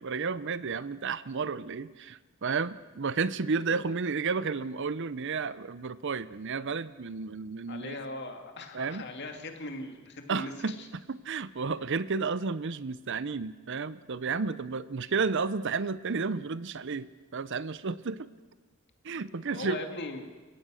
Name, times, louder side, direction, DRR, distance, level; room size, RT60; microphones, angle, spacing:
voice 1, 0.0-8.0 8.7-9.0 10.3-10.7 11.1-17.1 17.3-18.3 19.0-19.8, right 4 dB, 55° right, 16 dB, 0.6 m, -32 dB
voice 2, 7.7-10.9 19.2-20.3, left 2 dB, 50° left, 4 dB, 2.4 m, -40 dB
30.0 x 16.5 x 6.4 m, 1.3 s
head